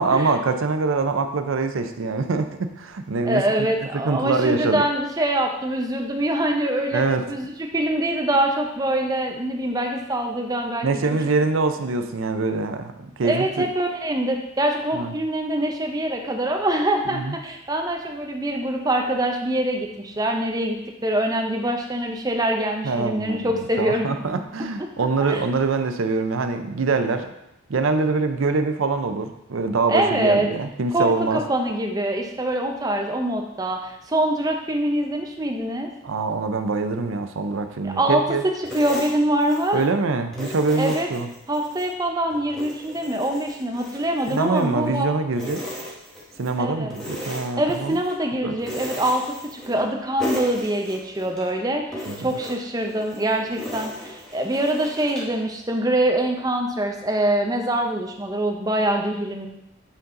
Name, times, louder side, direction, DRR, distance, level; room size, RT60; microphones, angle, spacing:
voice 1, 0.0-3.7 4.0-4.8 6.9-7.2 10.8-12.9 13.2-13.7 14.9-15.1 17.1-17.3 22.8-27.3 27.7-31.4 36.0-38.4 39.7-41.3 44.3-45.6 46.4-48.0 48.4-48.5 52.1-52.3, right 3 dB, 75° right, 8 dB, 0.5 m, -24 dB
voice 2, 3.2-11.2 13.2-24.1 24.3-24.4 25.2-25.4 29.9-30.5 30.9-35.9 37.8-39.8 40.8-41.1 41.5-45.1 46.6-47.0 47.5-59.5, right 1 dB, 20° right, 2 dB, 0.6 m, -24 dB
sound 1, 38.6-39.9 40.3-41.9 42.3-45.0 45.3-46.6 46.9-48.2 48.6-49.9 50.2-51.5 51.9-55.4, equal, 5° left, 1.2 m, -36 dB
8.3 x 4.0 x 3.8 m, 0.85 s
head